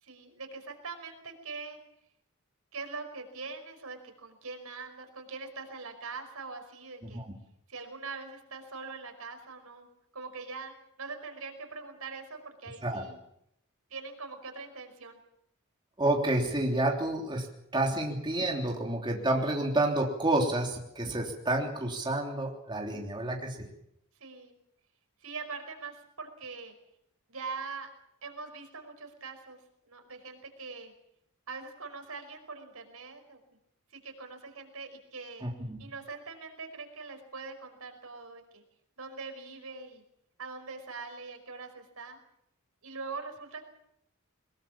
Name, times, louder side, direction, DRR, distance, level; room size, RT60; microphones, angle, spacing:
voice 1, 0.0-1.8 2.7-7.2 7.7-9.9 10.1-13.2 13.9-15.2 24.2-24.6 25.2-26.7 27.3-27.9 28.2-29.6 29.9-30.9 31.5-33.4 33.9-35.5 35.8-38.6 39.0-40.0 40.4-42.2 42.8-43.7, right 4 dB, 80° right, 6 dB, 5.1 m, -42 dB
voice 2, 16.0-17.5 17.7-23.7 35.4-35.8, right 1 dB, 20° right, 0 dB, 3.2 m, -29 dB
22.5 x 21.5 x 7.4 m, 0.76 s
head